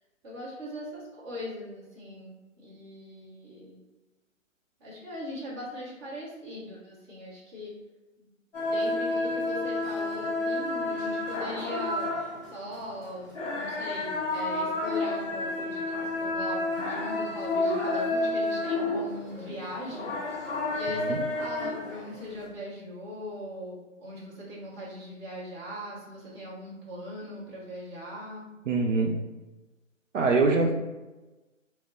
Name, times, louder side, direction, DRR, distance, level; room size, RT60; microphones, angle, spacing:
voice 1, 0.2-3.8 4.8-7.7 8.2-8.3 8.6-12.1 12.5-28.5 30.6-30.7, left 1 dB, 20° right, -7 dB, 0.8 m, -40 dB
Street Ambience muezzin, 8.5-22.5, left 2 dB, 10° left, 0.5 m, -30 dB
voice 2, 28.7-29.1 30.1-30.7, right 3 dB, 70° right, 2 dB, 0.5 m, -23 dB
2.3 x 2.1 x 3.6 m, 1.1 s
figure-of-eight pair, 135°, 40 cm